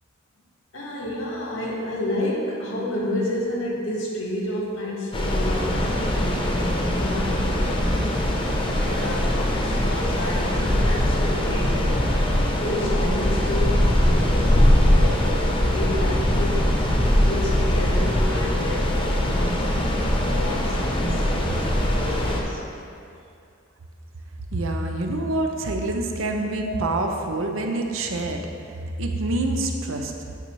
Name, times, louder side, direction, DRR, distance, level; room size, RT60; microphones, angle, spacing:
voice 1, 0.7-12.2 12.6-19.7 20.2-22.6 26.6-26.7, left 1 dB, 85° left, -3 dB, 1.5 m, -31 dB
sound 1, 5.1-22.4, left 1 dB, 25° left, 0.8 m, -21 dB
voice 2, 24.5-28.4 29.0-30.1, right 2 dB, 85° right, 3 dB, 0.7 m, -26 dB
9.3 x 5.5 x 3.2 m, 2.5 s
head